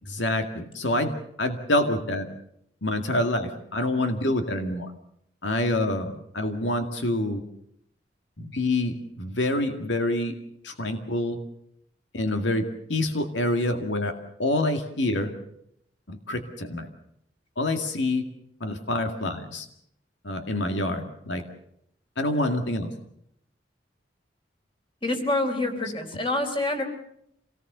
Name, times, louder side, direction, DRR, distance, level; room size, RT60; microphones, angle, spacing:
voice 1, 0.1-1.1 1.4-2.3 2.8-4.9 5.4-7.4 8.4-10.3 10.6-11.4 12.1-14.1 14.4-15.3 16.1-16.9 17.6-18.2 18.6-19.7 20.2-21.4 22.2-22.9, left 1 dB, 85° left, 6 dB, 2.1 m, -26 dB
voice 2, 25.0-26.8, left 2 dB, 30° left, 5 dB, 4.0 m, -26 dB
26.5 x 19.0 x 6.8 m, 0.74 s
head